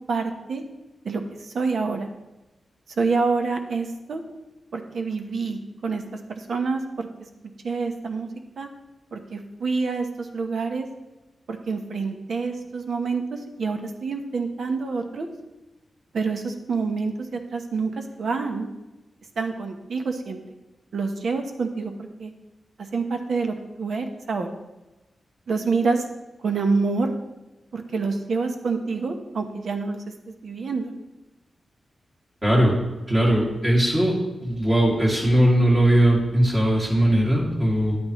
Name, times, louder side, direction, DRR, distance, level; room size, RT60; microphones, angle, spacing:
voice 1, 0.1-0.6 1.0-2.1 3.0-4.2 4.7-6.0 6.3-7.1 7.6-8.3 8.6-8.7 9.1-10.9 11.5-15.3 16.1-18.7 19.4-20.4 20.9-22.3 22.9-24.5 25.5-26.0 26.4-27.1 27.7-30.0 30.3-30.9, right 4 dB, 70° right, 5 dB, 1.0 m, -27 dB
voice 2, 32.4-32.8 33.1-34.1 34.4-38.0, right 1 dB, 25° right, -4 dB, 2.4 m, -19 dB
10.5 x 8.8 x 3.1 m, 1.1 s
wide cardioid pair, 95°, 0 cm